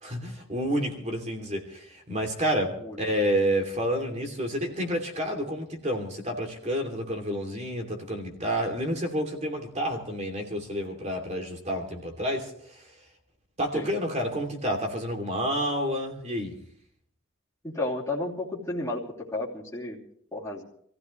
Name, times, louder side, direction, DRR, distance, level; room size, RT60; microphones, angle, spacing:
voice 1, 0.0-12.9 13.6-16.5, equal, 35° right, 3 dB, 2.8 m, -29 dB
voice 2, 2.8-3.2 13.7-13.9 17.6-19.0 19.3-20.0 20.3-20.6, left 2 dB, 15° left, -7 dB, 2.8 m, -32 dB
27.0 x 15.5 x 3.2 m, 0.65 s
head